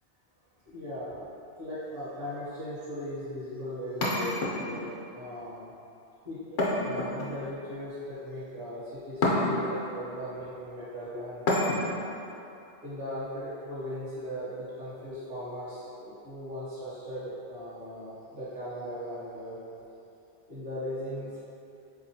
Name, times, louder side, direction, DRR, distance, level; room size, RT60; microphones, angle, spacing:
voice 1, 0.6-1.3 1.6-4.9 5.1-5.7 6.2-11.7 12.8-19.6 20.5-21.4, equal, 60° right, -13 dB, 1.1 m, -38 dB
sound 1, 4.0-5.0 6.6-7.6 9.2-9.8 11.5-12.1, left 1 dB, 75° left, 0.9 m, -28 dB
3.8 x 2.9 x 2.7 m, 2.7 s
omnidirectional pair, 1.1 m